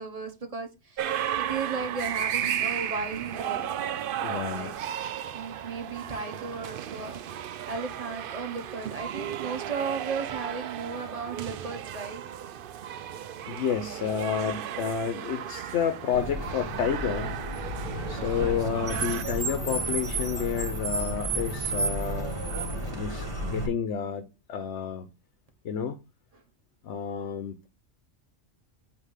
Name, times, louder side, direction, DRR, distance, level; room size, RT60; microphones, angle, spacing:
voice 1, 0.0-3.8 4.1-4.7 5.3-7.2 7.7-12.2, right 4 dB, 30° right, 1.3 m, -35 dB
sound 1, 1.0-19.2, right 10 dB, 65° right, 0.6 m, -34 dB
voice 2, 3.6-4.7 13.5-17.3 18.1-22.4 22.8-25.1 25.6-26.0 26.8-27.7, left 7 dB, 65° left, 1.0 m, -30 dB
Car, 16.1-23.7, right 2 dB, 45° right, 2.3 m, -32 dB
8.2 x 2.8 x 5.7 m
omnidirectional pair, 1.3 m